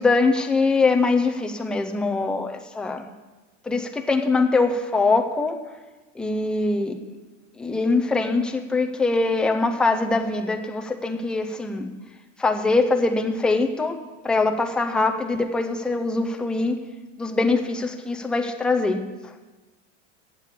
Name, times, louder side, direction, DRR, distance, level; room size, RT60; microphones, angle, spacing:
voice 1, 0.0-3.1 3.7-5.6 6.2-6.9 7.6-11.9 12.4-14.0 14.2-16.7 17.2-19.0, left 3 dB, 5° left, 4 dB, 0.3 m, -23 dB
8.5 x 7.4 x 8.2 m, 1.2 s
supercardioid pair, 145°, 37 cm